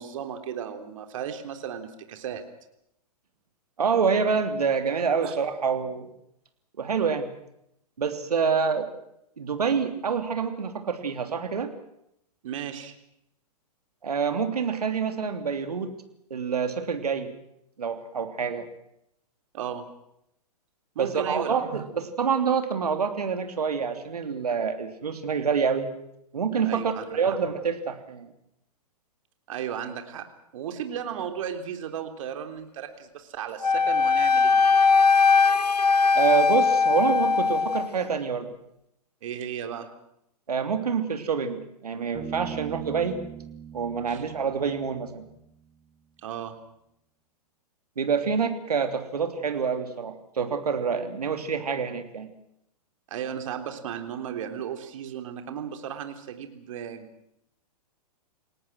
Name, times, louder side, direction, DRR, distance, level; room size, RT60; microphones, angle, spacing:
voice 1, 0.0-2.5 5.2-5.4 12.4-12.9 19.5-19.8 21.0-21.7 26.7-27.2 29.5-30.3 30.5-34.8 39.2-39.9 44.1-44.2 46.2-46.5 53.1-57.3, right 8 dB, 55° right, 7 dB, 3.6 m, -35 dB
voice 2, 3.8-6.1 6.8-7.3 8.0-8.9 9.4-11.7 14.0-16.0 16.3-17.3 17.8-18.6 21.0-25.9 26.3-28.3 36.1-38.5 40.5-43.2 43.7-45.2 48.0-52.3, right 6 dB, 75° right, 7 dB, 3.1 m, -27 dB
Wind instrument woodwind instrument, 33.6-37.9, left 5 dB, 85° left, 0.8 m, -20 dB
Bass guitar, 42.2-45.7, right 10 dB, 20° right, 2.7 m, -40 dB
29.0 x 18.5 x 6.2 m, 0.78 s
figure-of-eight pair, 115°, 20 cm